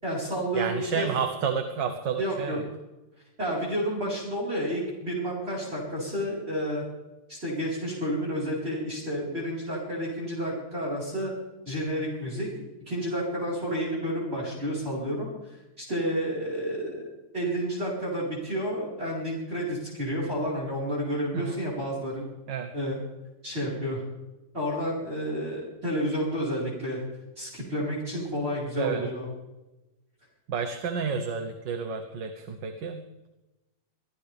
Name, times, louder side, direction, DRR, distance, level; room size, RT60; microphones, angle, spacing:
voice 1, 0.0-1.1 2.2-2.6 3.4-6.8 7.3-11.3 11.6-12.5 12.9-17.1 17.3-22.3 22.7-23.0 23.4-24.0 24.5-27.0 27.4-29.3, equal, 35° right, -5 dB, 4.9 m, -30 dB
voice 2, 0.6-2.6 21.3-21.6 22.5-22.7 28.8-29.0 30.5-33.0, right 6 dB, 85° right, 6 dB, 1.8 m, -30 dB
24.0 x 16.0 x 3.4 m, 1.0 s
omnidirectional pair, 1.9 m